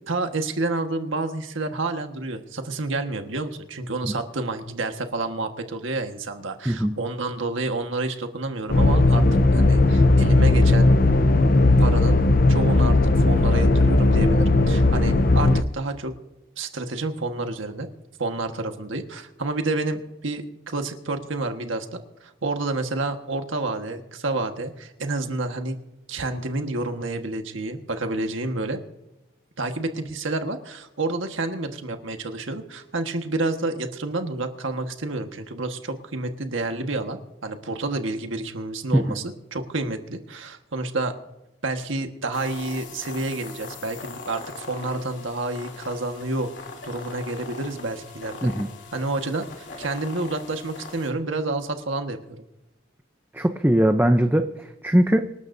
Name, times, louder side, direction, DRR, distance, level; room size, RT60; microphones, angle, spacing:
voice 1, 0.1-10.9 11.8-12.2 12.5-13.0 13.3-16.2 16.6-17.9 18.2-25.8 26.1-28.8 29.6-41.1 41.6-46.5 46.8-48.5 48.9-49.5 49.8-52.4, right 2 dB, 90° right, 5 dB, 1.5 m, -29 dB
sound 1, 8.7-15.6, left 2 dB, 45° left, 0.6 m, -17 dB
sound 2, 42.3-51.1, left 4 dB, 70° left, 3.0 m, -40 dB
voice 2, 53.3-55.3, equal, 10° right, 6 dB, 0.6 m, -20 dB
26.5 x 12.5 x 2.7 m, 0.96 s
head